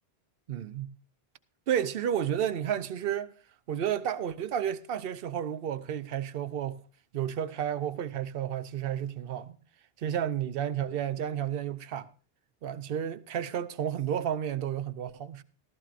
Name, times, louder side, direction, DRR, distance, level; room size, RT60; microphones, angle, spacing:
voice 1, 0.5-0.9 1.7-3.3 3.7-6.8 7.1-9.6 10.0-12.1 12.6-15.4, right 9 dB, 65° right, 0.9 m, -31 dB
15.0 x 13.5 x 2.5 m
omnidirectional pair, 1.0 m